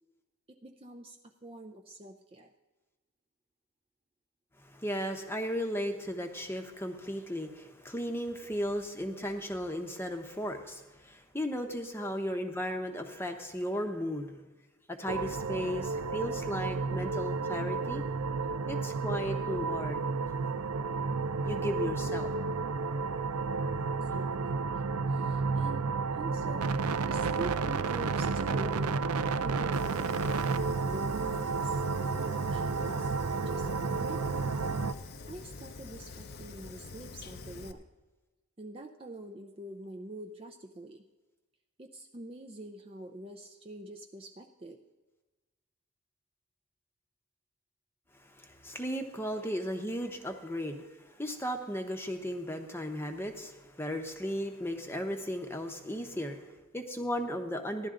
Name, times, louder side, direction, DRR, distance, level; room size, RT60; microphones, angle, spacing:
voice 1, 0.5-2.5 8.5-8.8 9.1-9.2 12.0-12.1 23.8-24.8 25.1-26.7 27.1-29.1 29.3-30.3 30.9-33.1 33.4-34.4 35.3-37.9 38.6-41.1 41.8-44.8 49.3-49.5 50.4-50.5, right 1 dB, 25° right, 3 dB, 0.4 m, -45 dB
voice 2, 4.6-14.4 14.9-18.0 18.7-20.0 21.4-22.3 48.4-57.9, equal, 10° left, 4 dB, 0.8 m, -35 dB
sound 1, 15.1-34.9, right 4 dB, 80° right, 0.5 m, -31 dB
Fire, 29.7-37.7, left 3 dB, 45° left, 0.6 m, -46 dB
15.5 x 11.5 x 3.8 m, 1.2 s
head